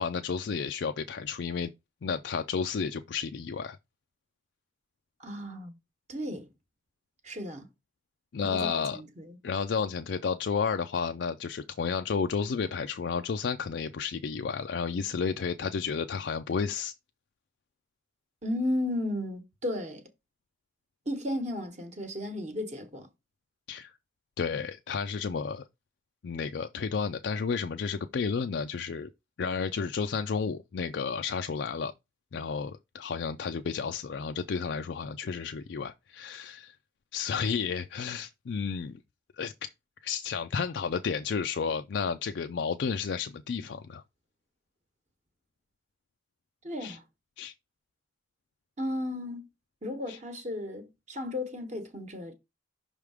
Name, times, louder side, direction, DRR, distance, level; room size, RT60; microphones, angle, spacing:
voice 1, 0.0-1.7 2.0-3.8 8.3-9.0 9.4-16.9 23.7-23.9 24.4-25.7 26.2-29.1 29.4-31.9 32.3-36.7 37.1-39.0 39.4-39.7 40.0-44.0 46.8-47.0 47.4-47.5 50.1-50.2, left 5 dB, 60° left, 0.4 m, -32 dB
voice 2, 5.2-5.8 6.1-6.5 7.2-7.7 8.4-9.4 18.4-20.0 21.1-23.1 46.6-47.0 48.8-49.5 49.8-52.3, left 1 dB, 35° right, 1.1 m, -34 dB
5.7 x 3.5 x 4.8 m
head